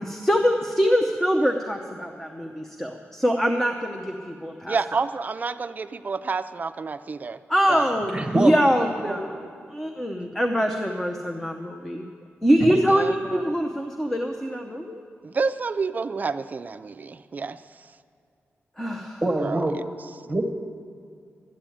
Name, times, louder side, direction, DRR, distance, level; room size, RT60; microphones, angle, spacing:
voice 1, 0.0-4.8 7.5-9.3 9.7-12.0 12.4-15.0 18.8-19.2, equal, 5° left, 3 dB, 0.7 m, -24 dB
voice 2, 4.7-7.4 7.7-7.9 12.9-13.4 15.2-17.6 19.4-19.6, right 4 dB, 40° right, 11 dB, 0.4 m, -29 dB
voice 3, 8.1-8.5 9.0-9.2 12.6-12.8 19.2-19.8 20.2-20.5, right 2 dB, 20° right, 3 dB, 1.2 m, -24 dB
12.5 x 8.7 x 9.1 m, 2.3 s
wide cardioid pair, 150°, 5 cm